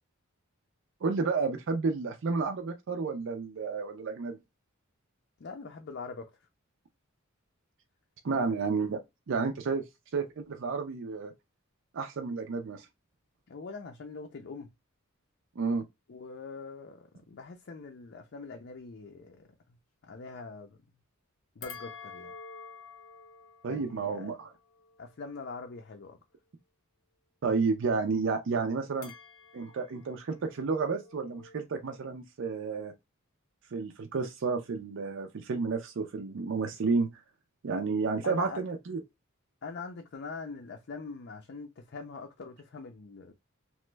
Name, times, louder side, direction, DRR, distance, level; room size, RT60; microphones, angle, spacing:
voice 1, 1.0-4.4 8.2-9.8 10.1-11.3 11.9-12.9 15.6-15.8 23.6-24.5 27.4-29.1 29.5-32.9 33.7-37.2 37.6-39.0, right 4 dB, 60° right, 0.5 m, -31 dB
voice 2, 5.4-6.3 8.3-8.5 13.5-14.7 16.1-19.5 20.0-20.8 21.6-22.3 23.7-24.3 25.0-26.2 38.2-38.6 39.6-43.3, left 4 dB, 55° left, 0.5 m, -43 dB
sound 1, 21.6-26.1 29.0-31.6, left 5 dB, 85° left, 0.7 m, -50 dB
3.0 x 2.1 x 3.2 m
head